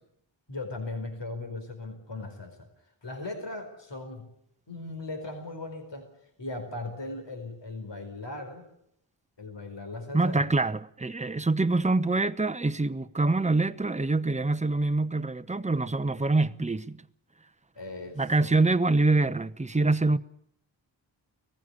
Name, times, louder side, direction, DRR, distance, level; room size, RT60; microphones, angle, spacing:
voice 1, 0.5-2.7 3.0-4.3 4.7-6.1 6.4-8.6 9.4-10.5 17.7-18.7, left 2 dB, 60° left, 4.7 m, -38 dB
voice 2, 10.1-17.0 18.2-20.2, right 2 dB, 15° right, 0.8 m, -25 dB
19.0 x 15.0 x 9.8 m
wide cardioid pair, 55°, 48 cm